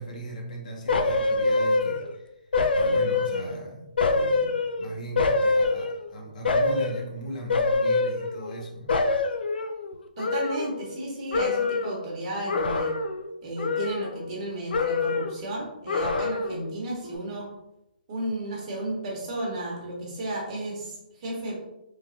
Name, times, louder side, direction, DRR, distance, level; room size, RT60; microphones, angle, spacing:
voice 1, 0.0-2.4 2.8-8.9, right 1 dB, 55° left, 0 dB, 0.9 m, -38 dB
sound 1, 0.9-2.2 2.5-3.6 4.0-6.1 6.4-7.0 7.5-8.6 8.9-11.0 11.3-12.0 12.5-13.3 13.6-14.4 14.7-15.4 15.9-16.7 17.0-17.2, left 3 dB, 85° left, 0.4 m, -25 dB
voice 2, 10.2-12.9 13.4-17.5 18.1-21.5, right 1 dB, 35° right, -3 dB, 1.1 m, -33 dB
3.2 x 2.3 x 2.5 m, 0.88 s
hypercardioid pair, 160°, 5 cm